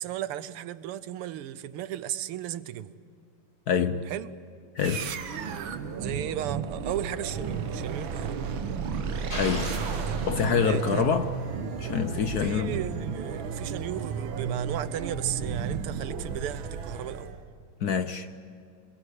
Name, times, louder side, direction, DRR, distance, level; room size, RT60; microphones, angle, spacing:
voice 1, 0.0-2.9 4.1-4.3 6.0-8.4 10.1-10.2 10.6-11.3 12.4-17.4, right 11 dB, 85° right, 1.8 m, -35 dB
voice 2, 3.7-4.1 4.7-5.1 9.4-9.8 10.3-11.3 11.8-12.8 17.8-18.4, left 7 dB, 65° left, 1.0 m, -26 dB
sound 1, 4.8-17.4, right 6 dB, 65° right, 1.9 m, -33 dB
sound 2, 9.3-11.0, left 1 dB, 45° left, 7.1 m, -38 dB
27.0 x 22.5 x 8.3 m
omnidirectional pair, 2.4 m